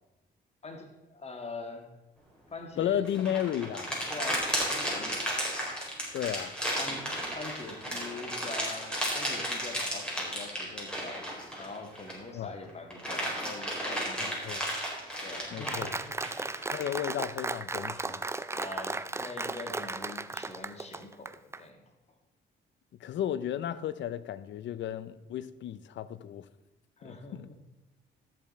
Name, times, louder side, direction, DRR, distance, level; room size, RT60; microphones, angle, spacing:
voice 1, 0.6-1.9 2.5-3.1 4.1-5.3 6.8-14.6 15.2-16.2 18.5-21.8 27.0-27.6, left 3 dB, 30° left, 1.9 m, -44 dB
voice 2, 2.8-3.9 6.1-6.5 12.3-12.5 14.2-14.6 15.5-15.9 16.7-18.2 23.0-26.4 27.0-27.5, left 10 dB, 65° left, 0.7 m, -33 dB
sound 1, 3.0-12.3 12.7-16.9, equal, 5° left, 4.6 m, -33 dB
Applause, 15.7-21.6, right 3 dB, 15° right, 0.5 m, -35 dB
14.0 x 7.5 x 4.3 m
cardioid pair, 90°, 20 cm